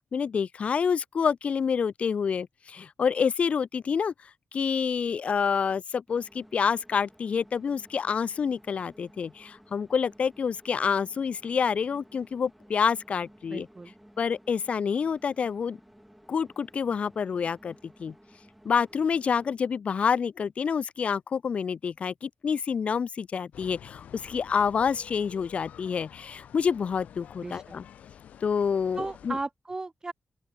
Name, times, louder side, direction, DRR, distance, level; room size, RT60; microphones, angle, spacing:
voice 1, 0.0-4.1 4.5-13.7 14.2-15.8 16.3-17.7 18.0-18.1 18.6-27.8 28.4-29.4, left 6 dB, 60° left, 0.3 m, -28 dB
sound 1, 6.1-19.5, equal, 5° right, 5.1 m, -56 dB
voice 2, 13.5-13.9 27.4-27.7 28.9-30.1, right 3 dB, 30° right, 1.2 m, -35 dB
sound 2, 23.5-29.4, left 9 dB, 90° left, 1.2 m, -49 dB
open air
cardioid pair, 65°, 2 cm